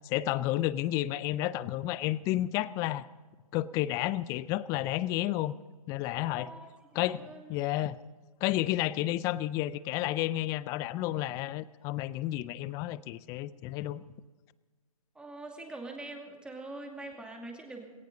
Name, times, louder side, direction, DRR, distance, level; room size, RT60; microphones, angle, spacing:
voice 1, 0.0-3.1 3.5-5.5 5.9-6.5 6.9-8.0 8.4-14.0, left 15 dB, 20° left, 19 dB, 0.4 m, -31 dB
voice 2, 6.3-6.7 6.9-7.6 15.1-17.9, right 2 dB, 5° right, 1 dB, 2.5 m, -44 dB
19.5 x 18.0 x 4.0 m, 1.4 s
hypercardioid pair, 135°, 19 cm